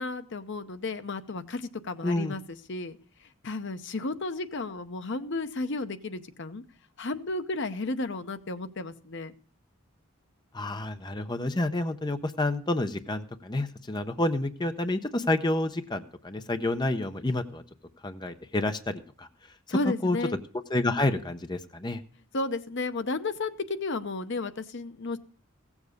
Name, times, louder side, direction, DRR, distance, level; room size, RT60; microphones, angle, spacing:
voice 1, 0.0-6.6 7.0-9.3 19.7-20.4 22.3-25.2, left 3 dB, 60° left, 11 dB, 0.8 m, -33 dB
voice 2, 2.0-2.3 10.5-17.6 18.0-19.3 20.0-20.2 20.7-22.0, left 2 dB, 20° left, 8 dB, 0.7 m, -29 dB
16.5 x 7.3 x 6.5 m, 0.43 s
head